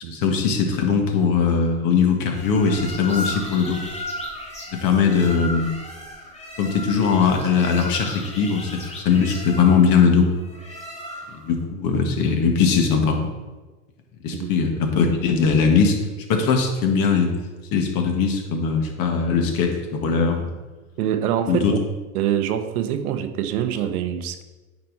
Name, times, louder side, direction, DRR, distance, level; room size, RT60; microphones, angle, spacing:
voice 1, 0.1-3.8 4.7-5.7 6.6-10.3 11.3-13.3 14.2-16.0 16.3-17.3 17.7-20.5 21.5-21.7, left 5 dB, 45° left, 3 dB, 1.8 m, -20 dB
sound 1, 2.3-11.5, left 1 dB, 15° left, 2.2 m, -35 dB
voice 2, 21.0-21.6 22.1-24.4, right 10 dB, 70° right, 9 dB, 0.9 m, -25 dB
8.9 x 5.3 x 4.1 m, 1.2 s
hypercardioid pair, 95°, 46 cm